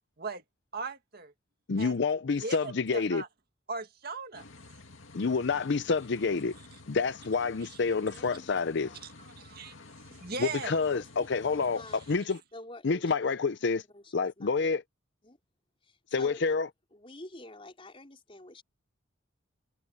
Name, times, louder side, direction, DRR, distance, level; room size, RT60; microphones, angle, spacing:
voice 1, 0.7-1.3 1.8-1.9 2.4-3.3 3.7-4.5 7.6-7.8 9.0-9.7 10.1-10.8, right 4 dB, 50° right, 2.0 m, -39 dB
voice 2, 1.7-3.2 5.1-6.5 6.9-8.9 10.4-11.8 12.1-12.4 12.8-13.8 14.1-14.8 16.1-16.7, left 4 dB, 60° left, 0.6 m, -28 dB
sound 1, 4.3-12.2, left 3 dB, 75° left, 2.2 m, -51 dB
voice 3, 8.1-9.0 10.9-12.0 12.5-14.8 15.2-15.4 15.8-16.4 16.9-18.6, left 1 dB, 25° left, 4.8 m, -49 dB
head